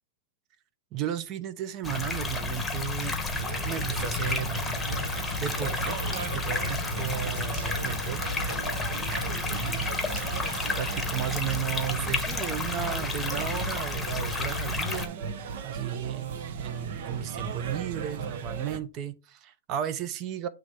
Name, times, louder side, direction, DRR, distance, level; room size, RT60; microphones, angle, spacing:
voice 1, 0.9-3.2 3.6-4.6 5.4-6.0 6.3-8.2 9.6-9.9 10.7-15.2 15.6-20.5, right 10 dB, 35° right, 0.7 m, -34 dB
sound 1, 1.8-15.1, left 3 dB, 5° left, 1.1 m, -31 dB
sound 2, 3.3-18.8, right 6 dB, 60° right, 0.9 m, -36 dB
7.7 x 3.2 x 5.0 m
hypercardioid pair, 145°, 0 cm